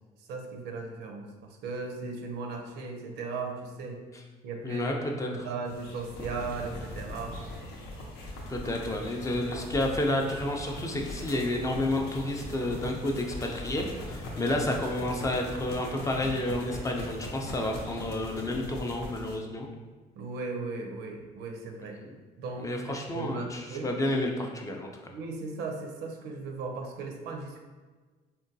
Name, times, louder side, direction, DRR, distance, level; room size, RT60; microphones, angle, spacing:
voice 1, 0.3-4.0 4.4-4.9 5.2-7.4 20.2-22.0 22.4-22.9 23.1-23.9 25.1-27.6, right 4 dB, 80° right, 3 dB, 0.5 m, -37 dB
voice 2, 4.6-5.5 8.5-19.7 22.0-22.1 22.6-24.9, left 1 dB, 20° left, 1 dB, 0.4 m, -30 dB
sound 1, 5.7-19.4, left 1 dB, 80° left, 0.7 m, -40 dB
3.7 x 2.2 x 2.6 m, 1.4 s
cardioid pair, 110°, 17 cm